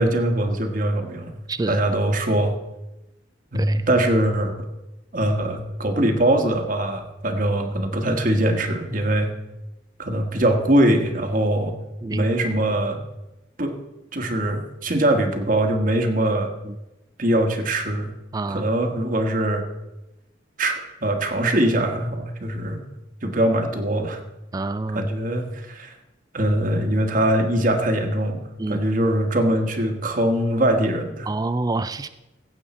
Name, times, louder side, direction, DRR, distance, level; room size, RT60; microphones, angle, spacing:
voice 1, 0.0-1.4 1.7-2.5 3.5-4.7 5.1-9.3 10.0-11.7 12.1-13.0 13.6-13.7 14.1-16.5 17.2-18.1 18.5-19.6 20.6-22.8 23.2-24.2 24.9-25.9 26.3-28.4 28.7-31.3, right 1 dB, 45° right, 5 dB, 1.4 m, -22 dB
voice 2, 1.5-1.8 3.5-3.8 12.0-12.2 16.6-16.8 18.3-18.7 24.5-25.1 28.6-28.8 31.3-32.1, right 2 dB, 20° right, 11 dB, 0.3 m, -27 dB
15.5 x 8.2 x 4.3 m, 0.96 s
head